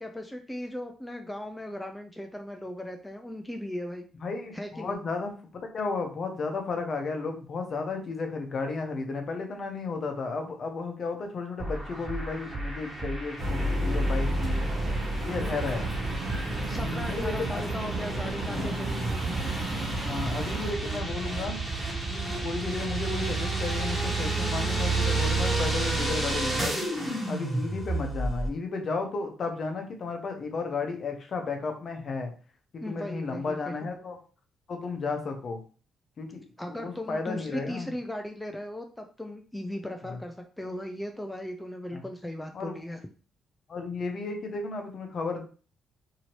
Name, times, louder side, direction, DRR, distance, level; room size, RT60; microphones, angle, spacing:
voice 1, 0.0-4.1 4.5-5.0 16.7-18.9 32.8-33.7 36.6-43.0, left 1 dB, 10° left, 3 dB, 0.4 m, -37 dB
voice 2, 4.2-14.7 15.2-16.0 16.7-17.9 18.5-18.8 20.1-21.6 22.1-26.9 27.3-32.3 32.7-34.2 34.7-35.6 36.2-36.4 36.8-37.9 40.1-40.2 41.9-42.0 42.5-42.8 43.7-45.4, left 4 dB, 50° left, 4 dB, 0.8 m, -33 dB
sound 1, 11.6-28.5, right 2 dB, 10° right, 1.4 m, -31 dB
sound 2, 13.4-20.7, right 1 dB, 45° right, 1.0 m, -31 dB
2.8 x 2.7 x 3.0 m, 0.38 s
cardioid pair, 90°, 0 cm